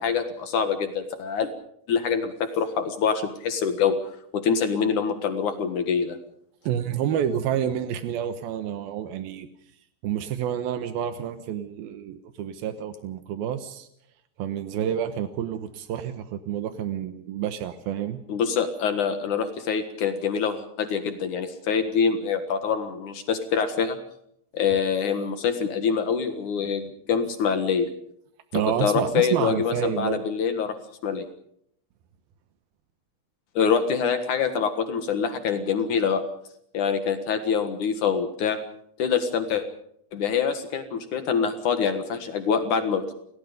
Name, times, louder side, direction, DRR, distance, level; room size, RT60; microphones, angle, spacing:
voice 1, 0.0-1.5 1.9-4.0 4.3-6.2 18.3-24.0 24.5-27.9 28.5-30.7 31.0-31.2 33.6-36.2 36.7-38.6 39.0-39.6 40.1-43.1, left 6 dB, 65° left, 8 dB, 2.0 m, -25 dB
voice 2, 6.6-9.5 10.0-13.9 14.4-18.2 28.5-30.2, right 9 dB, 75° right, 9 dB, 2.2 m, -29 dB
29.5 x 20.0 x 5.3 m, 0.70 s
omnidirectional pair, 5.9 m